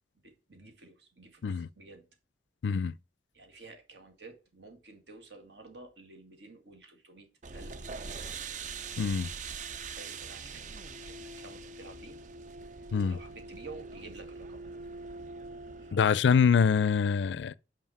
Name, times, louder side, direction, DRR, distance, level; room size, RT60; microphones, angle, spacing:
voice 1, 0.2-2.0 3.3-7.3 7.5-8.6 9.9-10.7 11.1-12.2 12.8-14.7 15.8-16.2, right 3 dB, 70° right, 2.0 m, -51 dB
voice 2, 2.6-2.9 9.0-9.3 12.9-13.2 15.9-17.5, left 6 dB, 75° left, 0.4 m, -25 dB
sound 1, 7.4-15.9, right 4 dB, 45° right, 0.5 m, -42 dB
5.6 x 5.1 x 6.0 m
head